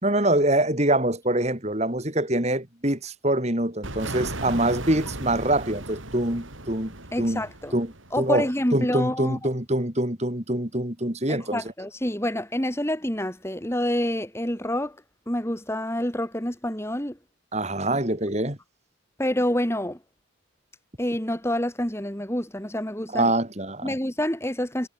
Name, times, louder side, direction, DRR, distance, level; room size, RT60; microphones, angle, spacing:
voice 1, 0.0-7.4 7.7-8.5 8.7-11.6 17.5-18.6 23.1-23.9, right 1 dB, 30° right, 3.4 m, -25 dB
sound 1, 3.8-8.5, right 2 dB, 75° right, 5.5 m, -36 dB
voice 2, 7.1-7.8 8.1-9.4 11.3-15.0 15.3-17.2 19.2-20.0 21.0-23.3 23.8-24.9, left 1 dB, 10° left, 2.5 m, -27 dB
head